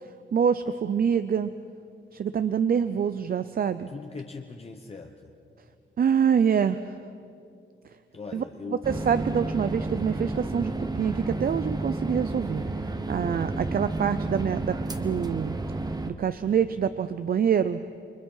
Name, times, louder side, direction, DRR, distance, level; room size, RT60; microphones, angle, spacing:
voice 1, 0.3-1.5 2.1-3.9 6.0-6.9 8.3-8.4 8.9-12.6 13.1-15.5 16.1-17.8, right 7 dB, 50° right, 12 dB, 0.5 m, -25 dB
voice 2, 3.9-5.3 8.1-9.1, left 4 dB, 30° left, 3 dB, 1.0 m, -40 dB
sound 1, 8.8-16.1, right 2 dB, 20° right, 0.9 m, -31 dB
29.0 x 23.5 x 5.6 m, 2.5 s
wide cardioid pair, 180°, 20 cm